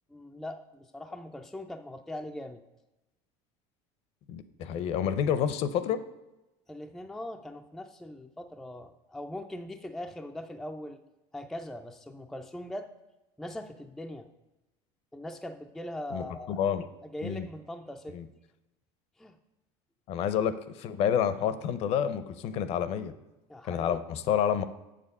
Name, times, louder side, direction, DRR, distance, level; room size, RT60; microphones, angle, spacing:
voice 1, 0.1-2.6 6.7-11.0 11.3-12.9 13.4-14.3 15.1-16.6 17.0-18.2 19.2-19.4 23.5-24.0, left 1 dB, ahead, 5 dB, 0.3 m, -41 dB
voice 2, 4.3-6.0 16.1-16.8 17.2-17.5 18.1-18.2 20.1-23.1 23.7-24.6, left 8 dB, 45° left, 13 dB, 0.6 m, -29 dB
7.5 x 6.6 x 5.4 m, 0.98 s
cardioid pair, 155°, 14 cm